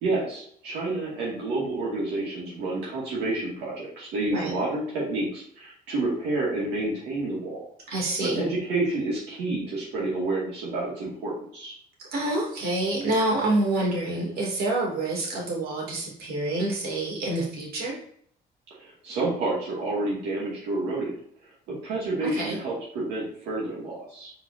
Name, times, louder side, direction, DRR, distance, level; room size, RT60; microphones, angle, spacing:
voice 1, 0.0-7.7 8.2-11.7 18.7-21.2 21.7-24.3, right 2 dB, 85° right, -5 dB, 2.4 m, -29 dB
voice 2, 7.9-8.4 12.1-17.9 22.2-22.6, right 2 dB, 65° right, -2 dB, 2.8 m, -27 dB
7.5 x 4.8 x 2.8 m, 0.63 s
cardioid pair, 110°, 17 cm